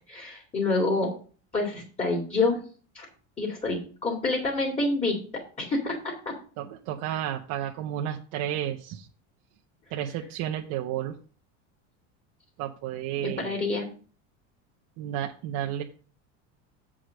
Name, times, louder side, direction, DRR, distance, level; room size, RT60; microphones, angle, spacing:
voice 1, 0.1-1.1 1.5-2.6 2.9-3.1 3.4-5.2 5.6-6.0 6.3-6.4 13.2-13.9, left 3 dB, 20° left, -1 dB, 2.4 m, -27 dB
voice 2, 6.6-9.1 9.9-11.2 12.6-13.6 15.0-15.8, right 11 dB, 60° right, 2 dB, 1.0 m, -32 dB
7.6 x 5.0 x 6.5 m, 0.39 s
cardioid pair, 145°, 35 cm